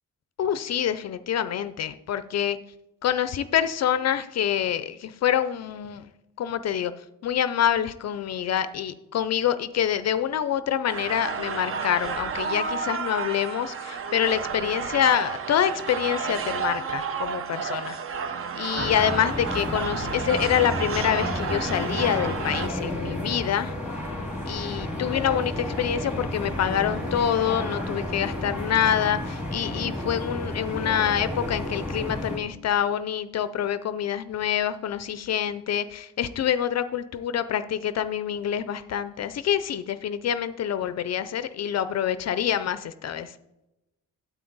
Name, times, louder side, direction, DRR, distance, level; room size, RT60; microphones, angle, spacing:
voice 1, 0.4-2.6 3.0-6.1 6.4-6.9 7.2-18.0 18.5-23.7 24.5-43.3, left 9 dB, 55° left, 12 dB, 0.4 m, -26 dB
sound 1, 10.9-22.7, right 6 dB, 40° right, 0.6 m, -31 dB
sound 2, 18.8-32.4, left 1 dB, 5° right, 1.9 m, -31 dB
9.3 x 8.4 x 3.9 m, 0.90 s
wide cardioid pair, 180°, 33 cm